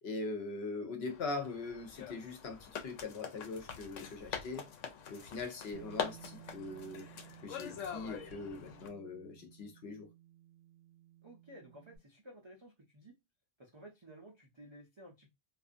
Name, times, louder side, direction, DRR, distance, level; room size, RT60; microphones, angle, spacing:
voice 1, 0.0-4.7 5.1-7.1 7.4-10.1, left 3 dB, 65° left, 0.8 m, -41 dB
sound 1, 1.1-8.9, left 7 dB, 85° left, 1.0 m, -44 dB
Bass guitar, 5.7-12.0, right 13 dB, 75° right, 0.9 m, -57 dB
voice 2, 11.2-13.1 13.6-15.3, right 1 dB, 50° right, 0.3 m, -55 dB
2.4 x 2.4 x 2.4 m
omnidirectional pair, 1.3 m